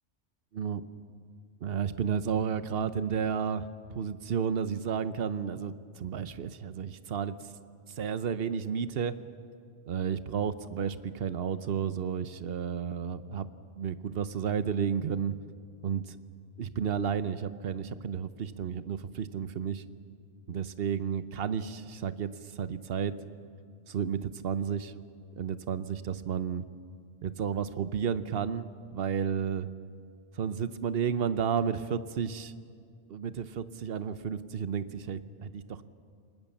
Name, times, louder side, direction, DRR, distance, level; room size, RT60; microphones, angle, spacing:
voice 1, 1.6-3.7 3.9-7.4 8.0-9.2 9.9-13.5 13.8-15.4 15.8-16.2 16.6-19.8 20.5-23.1 23.9-24.9 25.4-26.6 27.2-29.7 30.4-32.5 33.1-35.8, right 7 dB, 55° right, 13 dB, 1.0 m, -32 dB
29.0 x 19.5 x 7.2 m, 2.3 s
omnidirectional pair, 1.2 m